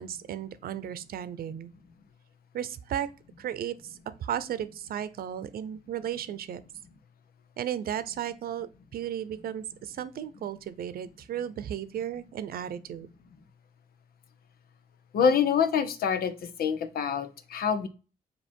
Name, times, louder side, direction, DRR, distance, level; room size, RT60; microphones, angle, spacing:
voice 1, 0.0-1.7 2.5-3.1 3.4-6.6 7.6-13.1, right 10 dB, 85° right, 0.7 m, -35 dB
voice 2, 15.1-16.3 16.6-17.9, left 7 dB, 90° left, 0.9 m, -25 dB
7.3 x 3.0 x 4.3 m
wide cardioid pair, 130°, 15 cm